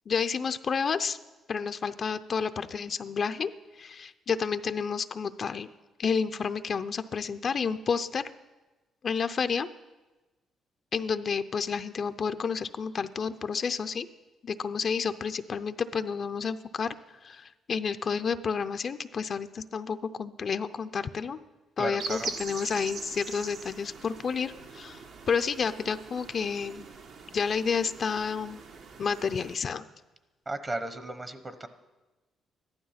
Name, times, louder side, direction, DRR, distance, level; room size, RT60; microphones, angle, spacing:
voice 1, 0.1-1.2 1.5-3.5 3.8-5.7 6.0-8.2 9.0-9.7 10.9-14.1 14.4-17.0 17.2-21.4 21.8-26.9 27.3-28.6 29.0-29.8, left 6 dB, 50° left, 10 dB, 0.5 m, -30 dB
voice 2, 21.8-22.3 30.5-31.7, right 2 dB, 30° right, 10 dB, 0.9 m, -35 dB
sound 1, 22.0-29.6, right 5 dB, 70° right, 1.3 m, -42 dB
14.0 x 12.0 x 5.8 m, 1.1 s
cardioid pair, 90°, 0 cm